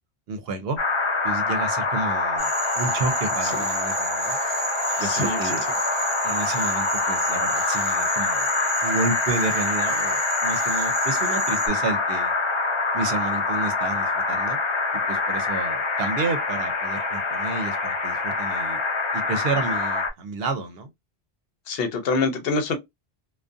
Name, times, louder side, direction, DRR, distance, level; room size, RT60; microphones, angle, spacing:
voice 1, 0.3-0.8 1.2-2.5 2.8-4.4 5.0-5.6 6.2-8.5 8.8-12.3 12.9-14.6 15.1-18.8 19.1-20.9, right 3 dB, 75° right, 0.8 m, -30 dB
sound 1, 0.8-20.1, left 3 dB, 45° left, 0.4 m, -25 dB
Cricket / Frog, 2.4-11.7, right 3 dB, 35° right, 1.0 m, -32 dB
voice 2, 5.0-5.4 21.7-22.7, left 4 dB, 70° left, 0.8 m, -25 dB
2.3 x 2.2 x 2.5 m
omnidirectional pair, 1.0 m